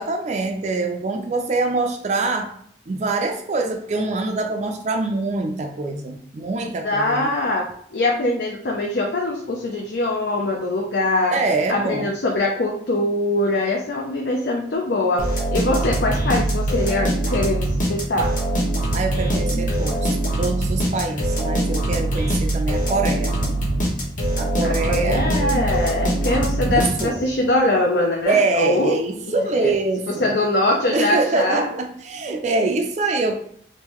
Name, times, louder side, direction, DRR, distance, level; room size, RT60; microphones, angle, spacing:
voice 1, 0.0-2.5 2.9-7.3 11.3-12.1 18.9-23.3 24.4-25.3 26.7-27.2 28.3-30.4 30.9-33.4, right 3 dB, 40° right, 4 dB, 0.4 m, -24 dB
voice 2, 6.8-7.7 7.9-11.4 11.7-18.3 24.6-29.0 29.3-29.7 30.2-31.7, left 2 dB, 65° left, 0 dB, 0.5 m, -22 dB
sound 1, 15.2-27.4, right 1 dB, 45° left, 1.1 m, -23 dB
3.7 x 2.5 x 3.0 m, 0.65 s
head